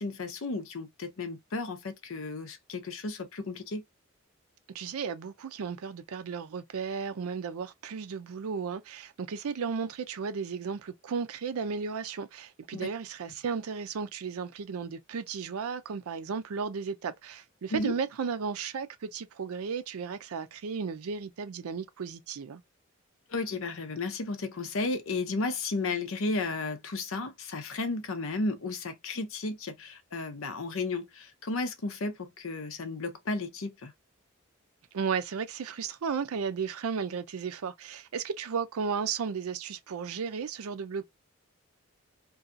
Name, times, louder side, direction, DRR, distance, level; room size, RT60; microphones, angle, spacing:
voice 1, 0.0-3.8 12.7-12.9 17.7-17.9 23.3-33.9, left 3 dB, 70° left, 0.6 m, -33 dB
voice 2, 4.7-22.6 34.9-41.1, right 6 dB, 85° right, 0.4 m, -34 dB
2.6 x 2.3 x 2.5 m
head